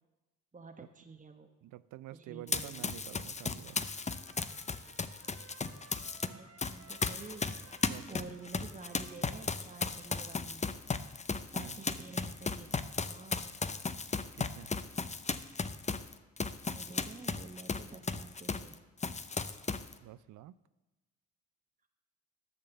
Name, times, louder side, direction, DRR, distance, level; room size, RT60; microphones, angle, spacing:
voice 1, 0.5-1.5 2.1-2.9 6.3-7.5 8.1-10.6 11.3-13.5 16.6-18.8, right 3 dB, 20° right, 5 dB, 1.1 m, -50 dB
voice 2, 1.6-3.8 7.9-8.3 11.6-11.8 14.4-14.7 20.0-20.6, right 15 dB, 55° right, 17 dB, 0.5 m, -49 dB
Run, 2.5-6.3 6.6-18.7 19.0-19.9, left 4 dB, 20° left, 0.6 m, -36 dB
Trumpet, 3.6-10.4, right 4 dB, 40° right, 1.4 m, -60 dB
11.0 x 6.7 x 7.0 m, 1.1 s
hypercardioid pair, 50°, 36 cm